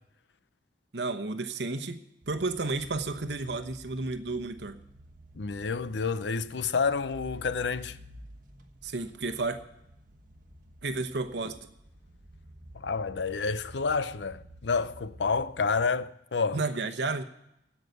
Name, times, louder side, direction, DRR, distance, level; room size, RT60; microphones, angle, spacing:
voice 1, 0.9-4.8 8.8-9.6 10.8-11.6 16.5-17.2, right 3 dB, 70° right, 1.0 m, -32 dB
sound 1, 2.2-15.9, equal, 50° right, 1.3 m, -51 dB
voice 2, 5.3-8.0 12.7-16.6, left 4 dB, 80° left, 0.6 m, -29 dB
16.5 x 5.7 x 9.3 m
head